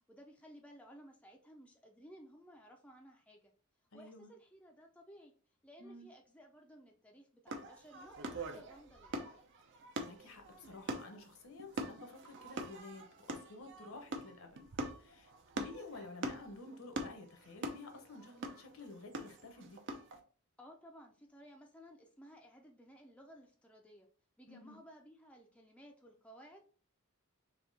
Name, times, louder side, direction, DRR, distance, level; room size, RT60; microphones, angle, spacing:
voice 1, 0.1-3.5 3.9-5.3 5.6-9.4 20.6-24.1 24.4-26.6, equal, 5° left, 1 dB, 0.5 m, -57 dB
voice 2, 3.9-4.3 5.8-6.1 9.9-14.6 15.0-19.8 24.5-24.8, left 2 dB, 65° left, 5 dB, 0.9 m, -52 dB
sound 1, 7.5-20.2, right 2 dB, 55° right, 0.6 m, -44 dB
3.6 x 2.8 x 4.0 m, 0.42 s
head